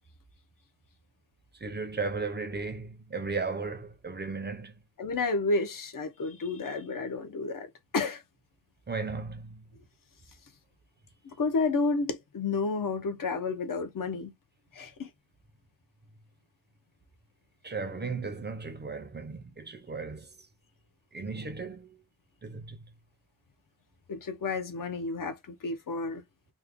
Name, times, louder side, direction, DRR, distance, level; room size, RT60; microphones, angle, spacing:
voice 1, 1.6-4.7 8.9-9.6 17.6-20.3 21.1-22.0 22.4-22.8, right 4 dB, 25° right, 0.6 m, -35 dB
voice 2, 5.0-7.7 7.9-8.2 11.4-14.3 14.7-15.1 24.1-26.2, left 3 dB, 55° left, 0.8 m, -31 dB
3.2 x 2.1 x 3.6 m
wide cardioid pair, 150°, 38 cm